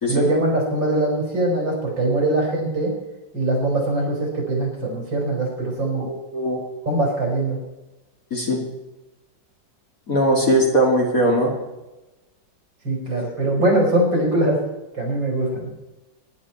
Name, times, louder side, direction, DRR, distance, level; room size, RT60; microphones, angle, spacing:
voice 1, 0.1-2.9 3.3-6.0 6.9-7.6 12.8-14.6 14.9-15.7, right 1 dB, 80° right, -1 dB, 4.8 m, -22 dB
voice 2, 6.0-6.6 8.3-8.6 10.1-11.6, equal, 45° left, -1 dB, 3.1 m, -20 dB
22.5 x 11.0 x 4.4 m, 1.0 s
omnidirectional pair, 2.0 m